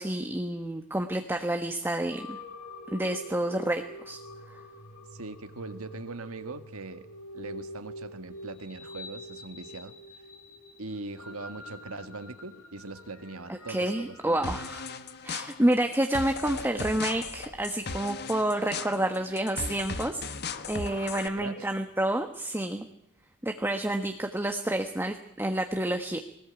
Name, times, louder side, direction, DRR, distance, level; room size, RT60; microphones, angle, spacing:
voice 1, 0.0-2.4 2.9-4.2 13.5-14.8 15.2-20.2 20.7-22.9 23.4-26.2, right 1 dB, 10° right, 5 dB, 1.2 m, -29 dB
sound 1, 2.1-21.6, left 1 dB, 80° left, 4.7 m, -47 dB
voice 2, 5.1-7.1 7.3-9.9 10.8-14.5 21.3-21.7, right 3 dB, 70° right, 10 dB, 1.8 m, -41 dB
sound 2, 14.4-21.3, left 4 dB, 50° left, 1.4 m, -38 dB
21.0 x 19.0 x 8.9 m, 0.75 s
head